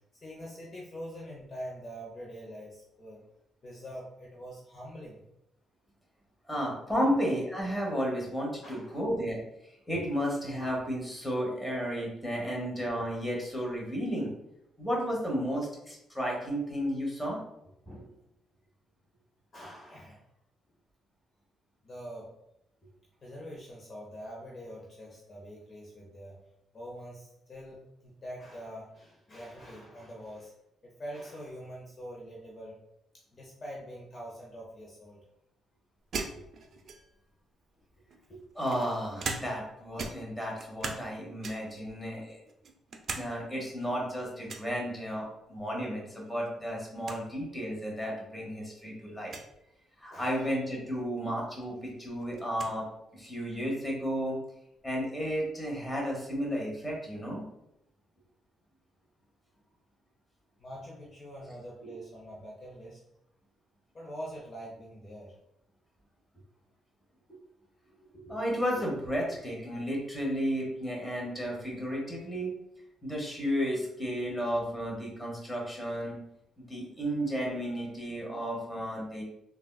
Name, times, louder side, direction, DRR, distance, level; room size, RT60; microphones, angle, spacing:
voice 1, 0.2-3.2 3.6-5.2 7.0-7.1 8.6-9.0 17.9-18.1 19.5-20.2 21.8-22.3 23.2-26.4 26.7-30.5 30.8-32.8 33.3-35.2 49.0-49.1 50.1-50.6 60.6-63.0 63.9-65.3, equal, 40° left, -3 dB, 0.7 m, -44 dB
voice 2, 6.5-9.4 9.9-14.3 14.8-17.4 38.3-42.4 43.1-49.3 50.0-52.9 53.1-54.4 54.8-57.4 61.8-62.0 68.1-72.5 73.0-76.2 76.6-79.2, equal, 10° left, -3 dB, 1.0 m, -33 dB
sound 1, 36.1-37.3 38.1-39.7 40.0-41.1 41.4-41.8 42.3-43.3 43.6-43.7 44.5-44.7 46.2-46.5 46.8-46.9 47.0-47.2 48.0-48.1 49.2-49.5 51.2-51.3 51.6-52.8, right 4 dB, 55° right, 0.4 m, -39 dB
3.4 x 2.3 x 2.3 m, 0.81 s
cardioid pair, 90°, 0 cm